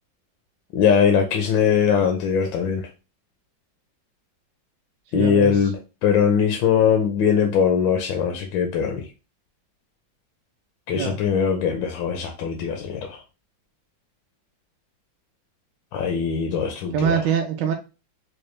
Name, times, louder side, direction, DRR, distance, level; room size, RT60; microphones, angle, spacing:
voice 1, 0.7-2.8 5.1-5.7 6.0-9.0 10.9-13.2 15.9-17.1, left 7 dB, 80° left, 4 dB, 1.4 m, -21 dB
voice 2, 5.1-5.7 10.9-11.2 16.9-17.7, right 7 dB, 75° right, 4 dB, 1.2 m, -24 dB
4.8 x 2.2 x 3.1 m, 0.30 s
omnidirectional pair, 2.1 m